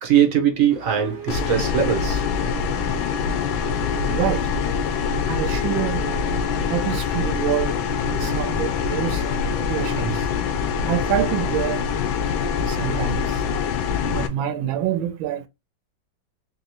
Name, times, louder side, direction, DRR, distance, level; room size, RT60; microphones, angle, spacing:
voice 1, 0.0-2.2, right 9 dB, 60° right, 0.9 m, -20 dB
sound 1, 0.7-12.8, right 6 dB, 35° right, 1.1 m, -40 dB
sound 2, 1.3-14.3, left 6 dB, 85° left, 1.4 m, -24 dB
voice 2, 4.1-4.5 5.3-6.0 6.7-9.2 9.7-10.3 10.9-11.8 12.7-13.4 14.1-15.5, right 11 dB, 90° right, 1.4 m, -26 dB
3.9 x 2.9 x 2.8 m
omnidirectional pair, 2.1 m